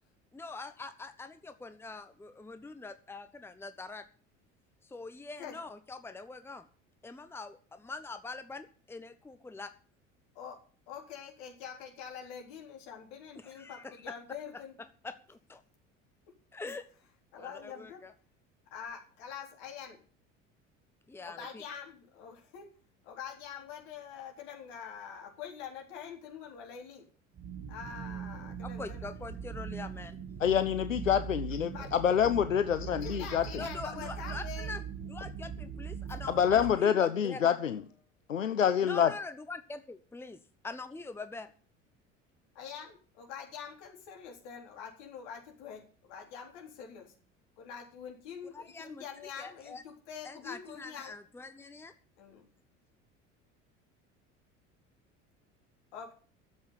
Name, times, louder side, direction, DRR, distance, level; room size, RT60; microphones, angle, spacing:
voice 1, 0.3-4.1 4.8-6.6 7.0-9.7 13.4-14.1 14.8-15.6 16.5-16.9 17.4-18.1 21.1-21.6 28.8-30.2 31.8-31.9 33.6-34.8 35.1-37.4 38.8-40.4 40.6-41.5 48.5-49.1 49.4-49.8 50.2-51.9, left 3 dB, 5° left, 10 dB, 1.0 m, -44 dB
voice 2, 10.9-14.7 17.3-18.0 18.7-20.0 21.2-22.7 23.0-27.1 27.7-29.1 31.7-31.9 33.0-34.7 42.5-47.1 47.6-51.1 52.2-52.5 55.9-56.1, left 7 dB, 60° left, 2 dB, 3.9 m, -45 dB
sound 1, 27.3-36.8, right 7 dB, 35° right, 1.9 m, -41 dB
voice 3, 30.4-33.6 36.3-37.8 38.3-39.1, left 8 dB, 85° left, 11 dB, 0.6 m, -27 dB
12.0 x 7.9 x 8.6 m, 0.41 s
figure-of-eight pair, 65°, 38 cm